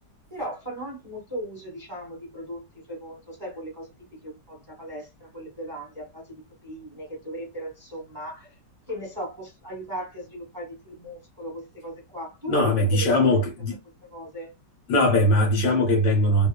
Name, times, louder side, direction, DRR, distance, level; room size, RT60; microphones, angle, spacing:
voice 1, 0.3-2.6 2.9-3.9 4.1-6.2 6.6-8.5 8.9-13.4 14.1-14.5, right 1 dB, 15° right, 1.0 m, -37 dB
voice 2, 12.5-13.8 14.9-16.5, left 1 dB, 60° left, 1.4 m, -20 dB
3.0 x 2.1 x 2.2 m
omnidirectional pair, 2.0 m